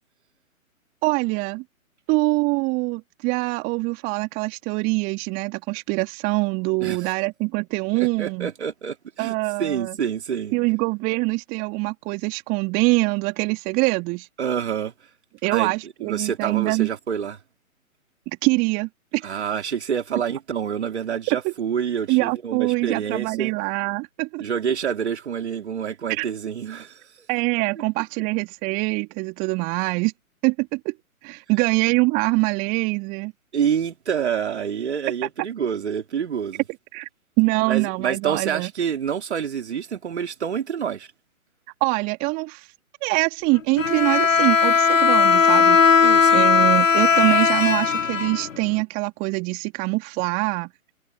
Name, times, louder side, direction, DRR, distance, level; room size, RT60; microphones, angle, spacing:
voice 1, 1.0-1.6 2.1-8.5 9.2-10.0 10.5-14.3 15.4-16.9 18.4-19.3 21.3-21.5 22.1-24.4 26.1-26.3 27.3-30.1 30.4-30.9 31.2-33.3 36.9-37.1 37.4-38.7 41.8-42.7 43.0-45.8 46.3-50.7, right 27 dB, 20° right, 2.7 m, -24 dB
voice 2, 6.8-7.2 7.9-10.6 14.4-14.9 15.5-15.7 16.0-17.4 19.2-23.5 24.4-27.1 33.5-36.6 37.7-41.1 46.0-46.5, right 7 dB, 50° right, 3.7 m, -27 dB
Bowed string instrument, 43.8-48.8, left 6 dB, 60° left, 1.1 m, -17 dB
figure-of-eight pair, 135°, 43 cm